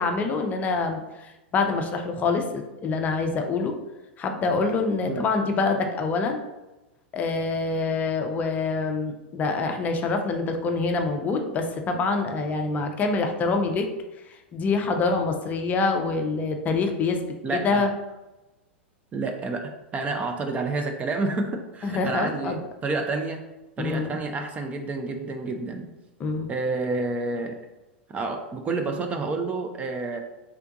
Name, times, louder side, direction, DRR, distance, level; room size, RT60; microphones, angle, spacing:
voice 1, 0.0-3.7 4.2-6.4 7.1-13.9 14.3-17.2 17.5-17.9 21.8-22.6 23.8-24.2 26.2-26.5, left 3 dB, 25° left, 4 dB, 0.6 m, -26 dB
voice 2, 17.4-17.8 19.1-22.6 22.8-23.4 23.8-25.9 26.5-27.6 28.1-30.2, right 3 dB, 20° right, 4 dB, 0.5 m, -29 dB
3.5 x 3.4 x 3.9 m, 1.0 s
figure-of-eight pair, 95°, 6 cm